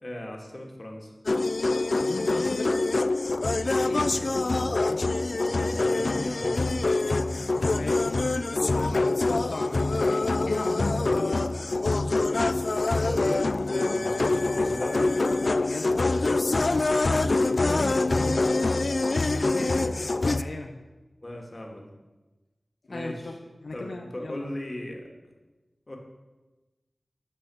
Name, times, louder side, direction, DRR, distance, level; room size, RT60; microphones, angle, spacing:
voice 1, 0.0-1.1 4.0-4.3 5.4-7.5 11.0-11.2 12.7-15.2 17.4-18.5 19.5-20.0 21.2-21.9 22.9-23.4 23.7-25.1 25.9-26.0, left 1 dB, 40° left, 1 dB, 2.3 m, -38 dB
sound 1, 1.3-20.4, left 2 dB, 60° left, 0.4 m, -25 dB
voice 2, 2.0-2.9 3.7-4.5 4.8-5.2 7.7-8.1 8.5-9.9 10.5-11.5 13.7-14.0 15.6-16.3 17.6-18.1 19.3-19.8 20.4-20.8 22.9-23.4 23.6-24.5, left 2 dB, 80° left, 2 dB, 0.9 m, -36 dB
9.6 x 6.9 x 7.2 m, 1.1 s
cardioid pair, 45°, 0 cm